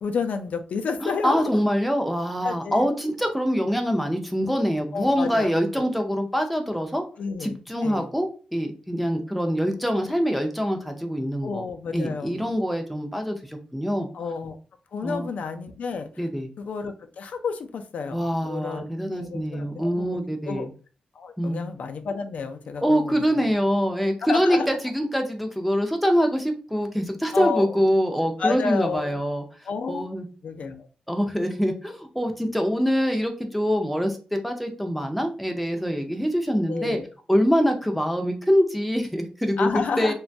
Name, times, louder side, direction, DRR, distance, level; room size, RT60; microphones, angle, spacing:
voice 1, 0.0-1.5 2.4-2.9 4.9-5.5 7.2-8.1 11.4-12.5 14.1-14.6 14.9-16.3 16.6-20.2 20.4-20.7 21.1-23.4 24.2-24.7 27.3-27.8 28.4-29.2 29.7-30.1 30.4-30.9 36.7-37.1 39.6-40.1, left 5 dB, 70° left, 7 dB, 0.3 m, -30 dB
voice 2, 1.0-7.0 7.4-11.7 11.9-14.1 15.0-15.3 16.2-16.5 18.1-20.7 21.4-21.6 22.8-29.4 29.9-30.2 31.1-37.0 37.3-39.7 40.0-40.1, equal, ahead, 3 dB, 0.4 m, -24 dB
3.0 x 2.2 x 2.5 m, 0.37 s
wide cardioid pair, 150°, 3 cm